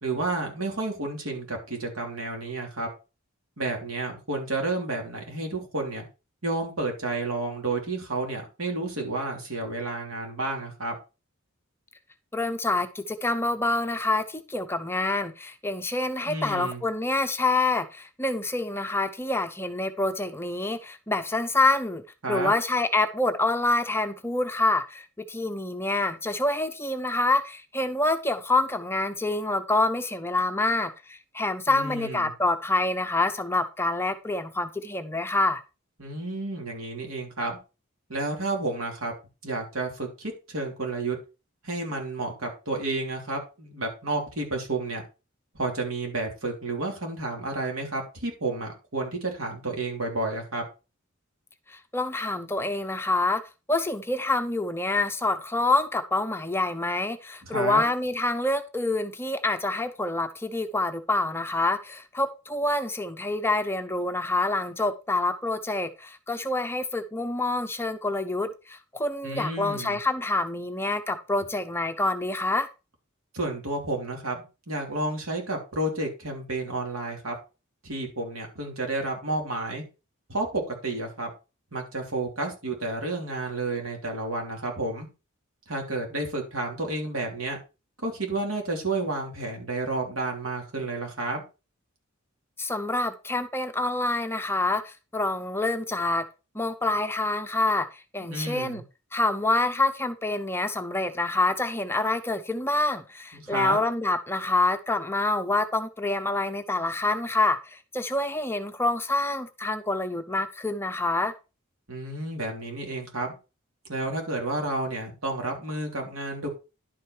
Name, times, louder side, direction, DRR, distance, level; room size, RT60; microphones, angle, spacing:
voice 1, 0.0-2.9 3.6-6.0 6.4-11.0 16.3-16.8 22.2-22.5 31.7-32.3 36.0-37.6 38.1-39.1 39.4-41.2 41.6-45.0 45.5-50.7 57.4-57.9 69.2-70.0 73.3-77.4 77.8-79.8 80.3-81.3 81.7-85.1 85.7-87.6 88.0-91.4 98.2-98.8 103.3-103.8 111.9-113.3 113.9-116.5, right 2 dB, 90° right, 3.1 m, -31 dB
voice 2, 12.3-22.0 22.3-35.6 51.7-53.4 53.7-72.7 92.6-96.2 96.5-98.8 99.1-111.3, left 2 dB, 10° left, 0.8 m, -27 dB
11.0 x 5.1 x 4.6 m
head